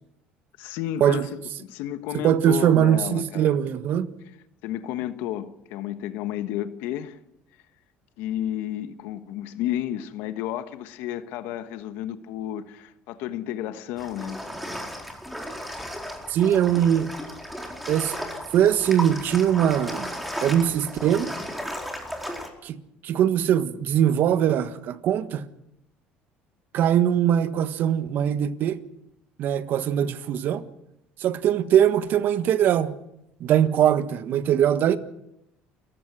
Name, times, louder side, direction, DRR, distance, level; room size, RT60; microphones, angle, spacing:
voice 1, 0.6-1.3 1.6-3.5 4.6-7.2 8.2-14.4, left 12 dB, 80° left, 1.3 m, -32 dB
voice 2, 2.2-4.1 16.3-17.1 17.9-18.2 18.5-20.1 20.4-21.3 22.6-25.4 26.7-28.8 29.4-30.6 31.2-32.9 33.4-35.0, right 10 dB, 60° right, 1.5 m, -21 dB
sound 1, 14.0-22.5, equal, ahead, 4.5 m, -35 dB
29.0 x 15.5 x 6.3 m
supercardioid pair, 100°, 4 cm